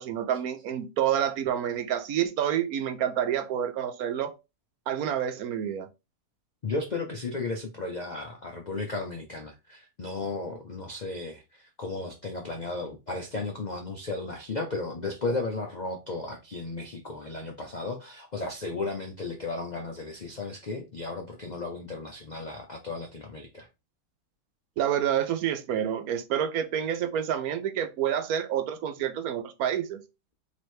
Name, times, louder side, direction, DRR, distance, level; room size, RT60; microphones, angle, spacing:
voice 1, 0.0-4.3 4.9-5.9 24.8-30.0, right 9 dB, 70° right, 1.0 m, -28 dB
voice 2, 6.6-23.7, left 3 dB, 55° left, 0.4 m, -34 dB
3.2 x 3.0 x 4.3 m
omnidirectional pair, 1.7 m